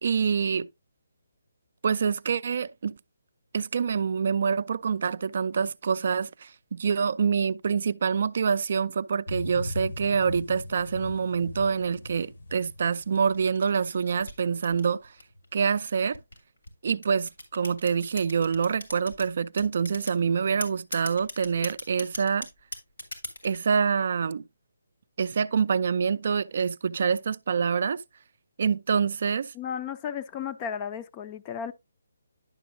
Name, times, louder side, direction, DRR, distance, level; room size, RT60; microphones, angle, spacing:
voice 1, 0.0-0.7 1.8-3.0 3.5-15.1 15.5-16.2 16.8-22.5 23.4-24.4 25.2-28.0 28.6-29.5, right 6 dB, 50° right, 0.3 m, -26 dB
sound 1, 9.3-14.9 15.3-15.4, left 2 dB, 65° left, 1.1 m, -39 dB
sound 2, 13.0-15.5 16.1-19.3 19.6-20.2 20.6-23.6, left 2 dB, 85° left, 2.6 m, -39 dB
voice 2, 29.5-31.7, left 8 dB, 20° left, 0.4 m, -34 dB
10.5 x 6.1 x 2.6 m
hypercardioid pair, 160°, 0 cm